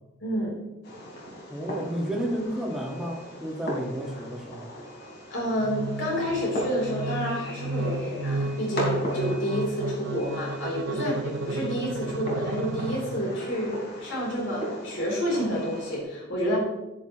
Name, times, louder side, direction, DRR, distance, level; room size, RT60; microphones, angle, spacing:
voice 1, 0.2-0.6 5.3-16.6, equal, 75° left, -4 dB, 3.5 m, -29 dB
Fireworks, 0.8-16.0, equal, 60° left, 3.4 m, -38 dB
voice 2, 1.5-4.7, right 1 dB, ahead, -1 dB, 1.6 m, -31 dB
sound 1, 5.6-13.5, right 2 dB, 80° right, 0.6 m, -33 dB
11.0 x 10.5 x 3.0 m, 1.0 s
head